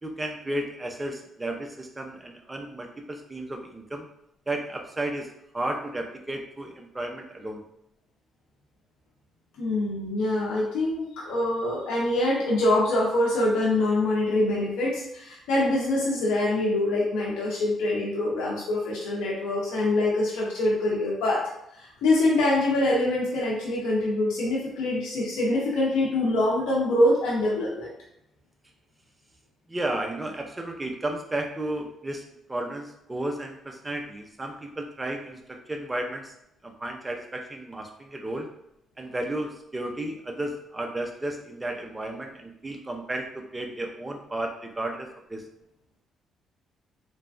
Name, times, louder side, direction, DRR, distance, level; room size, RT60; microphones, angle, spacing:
voice 1, 0.0-4.1 4.5-7.6 29.7-32.2 32.5-35.4 35.7-36.3 36.6-38.5 39.0-45.4, right 1 dB, 15° right, 3 dB, 0.5 m, -33 dB
voice 2, 9.6-21.4 21.7-27.9, left 1 dB, 90° left, -5 dB, 0.6 m, -24 dB
3.2 x 2.2 x 2.5 m, 0.78 s
cardioid pair, 90°, 0 cm